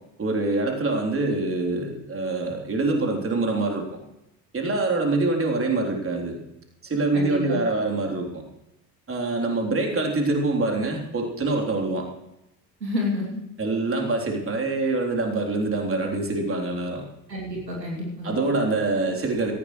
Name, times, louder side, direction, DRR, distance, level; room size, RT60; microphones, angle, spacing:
voice 1, 0.2-4.0 4.5-6.4 6.8-8.4 9.1-12.1 13.6-17.0 18.2-19.5, right 2 dB, 25° right, 2 dB, 3.5 m, -25 dB
voice 2, 7.1-7.6 12.8-13.4 17.3-18.4, left 1 dB, 85° right, -1 dB, 2.9 m, -29 dB
18.0 x 15.0 x 3.2 m, 0.85 s
figure-of-eight pair, 60°, 49 cm